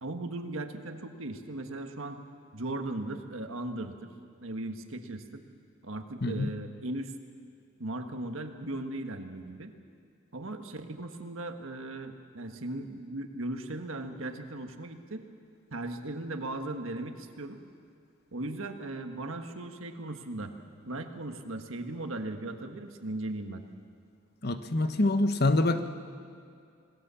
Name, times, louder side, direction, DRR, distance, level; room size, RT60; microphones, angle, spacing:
voice 1, 0.0-2.2 2.5-4.1 4.4-5.4 5.8-7.1 7.8-9.7 10.3-15.2 15.7-17.6 18.3-20.5 20.9-23.6, right 2 dB, 75° right, 6 dB, 1.6 m, -37 dB
voice 2, 24.4-25.8, left 2 dB, 50° left, 8 dB, 1.1 m, -25 dB
27.0 x 18.5 x 7.1 m, 2.3 s
head